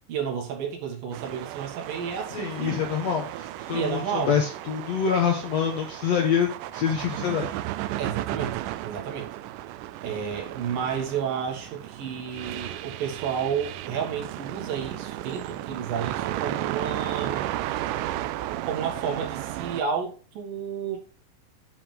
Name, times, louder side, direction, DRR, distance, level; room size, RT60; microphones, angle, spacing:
voice 1, 0.1-2.8 3.7-4.4 8.0-9.3 10.0-17.5 18.6-21.0, right 7 dB, 70° right, 3.3 m, -31 dB
sound 1, 1.1-19.8, right 14 dB, 85° right, 1.8 m, -34 dB
voice 2, 2.3-7.5, left 7 dB, 70° left, 1.6 m, -26 dB
9.9 x 4.9 x 3.8 m
omnidirectional pair, 4.2 m